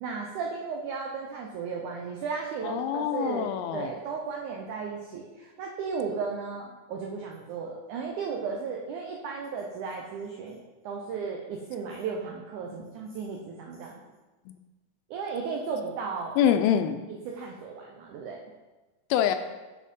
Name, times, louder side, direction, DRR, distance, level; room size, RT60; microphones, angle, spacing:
voice 1, 0.0-14.0 15.1-16.4 17.3-18.4, right 5 dB, 85° right, 0 dB, 1.7 m, -35 dB
voice 2, 2.6-3.9 14.5-14.6 16.4-17.0 19.1-19.4, left 9 dB, 85° left, 8 dB, 2.3 m, -25 dB
8.6 x 4.4 x 5.3 m, 1.2 s
omnidirectional pair, 4.4 m